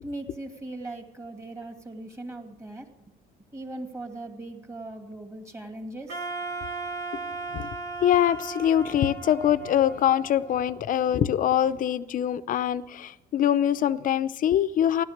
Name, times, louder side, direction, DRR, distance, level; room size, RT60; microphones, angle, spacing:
voice 1, 0.0-3.1 3.5-6.3, right 2 dB, 15° right, 4 dB, 2.4 m, -39 dB
Wind instrument woodwind instrument, 6.1-11.1, right 3 dB, 75° right, 2.3 m, -37 dB
voice 2, 8.0-15.0, left 10 dB, 55° left, 14 dB, 0.7 m, -23 dB
15.0 x 12.0 x 6.6 m, 0.93 s
cardioid pair, 110°, 17 cm